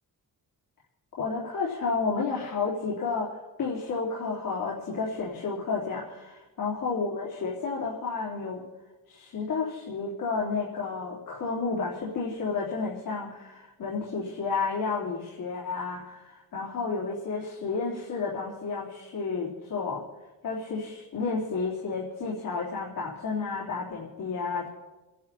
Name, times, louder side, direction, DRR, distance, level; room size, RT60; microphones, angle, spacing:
voice 1, 1.2-8.6 9.1-20.0 20.4-24.7, left 4 dB, 70° left, -5 dB, 3.7 m, -31 dB
29.5 x 11.0 x 4.3 m, 1.2 s
wide cardioid pair, 145°, 35 cm